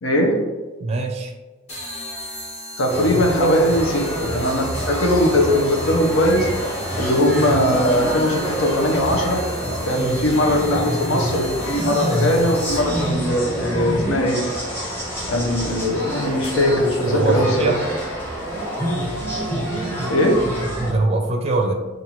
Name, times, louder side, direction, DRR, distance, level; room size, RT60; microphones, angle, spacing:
voice 1, 0.0-0.5 2.8-6.5 7.0-9.5 9.9-14.5 15.3-17.8 20.1-20.6, left 1 dB, 80° left, 2 dB, 0.8 m, -20 dB
voice 2, 0.8-1.3 3.4-3.6 17.1-17.8 20.8-21.7, right 3 dB, 30° right, 2 dB, 0.4 m, -22 dB
sound 1, 1.7-13.1, equal, 35° left, 1.2 m, -37 dB
sound 2, 2.9-20.9, equal, 10° left, 1.0 m, -27 dB
5.4 x 2.6 x 3.0 m, 1.3 s
head